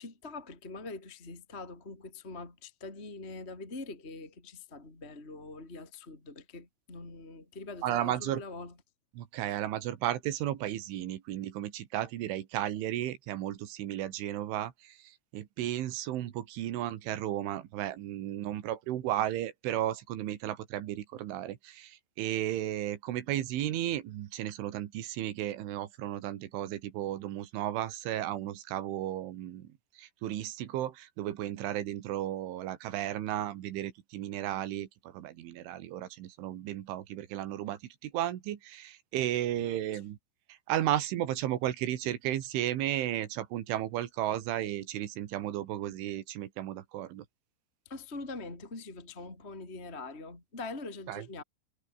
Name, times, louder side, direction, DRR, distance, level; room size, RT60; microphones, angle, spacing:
voice 1, 0.0-8.7 39.4-39.8 47.9-51.4, left 3 dB, 15° left, 3.5 m, -43 dB
voice 2, 7.8-8.4 9.2-29.7 30.0-40.2 40.5-47.3 51.1-51.3, right 13 dB, 80° right, 4.2 m, -34 dB
omnidirectional pair, 5.6 m